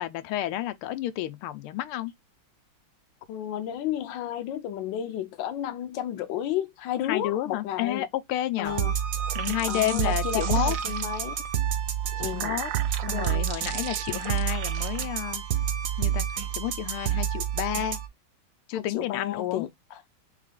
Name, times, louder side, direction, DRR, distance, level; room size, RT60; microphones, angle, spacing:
voice 1, 0.0-2.1 7.1-8.8 9.3-10.8 12.2-12.7 13.1-15.4 16.0-16.3 16.6-18.0 18.7-19.7, left 13 dB, 90° left, 1.5 m, -30 dB
voice 2, 3.3-8.0 8.6-8.9 9.7-11.4 12.2-12.6 13.0-13.8 18.7-19.7, left 11 dB, 70° left, 1.4 m, -32 dB
sound 1, 8.6-18.1, right 9 dB, 65° right, 0.8 m, -29 dB
sound 2, 9.1-11.4 12.1-15.1, right 14 dB, 85° right, 1.4 m, -39 dB
4.2 x 3.2 x 3.6 m
omnidirectional pair, 2.3 m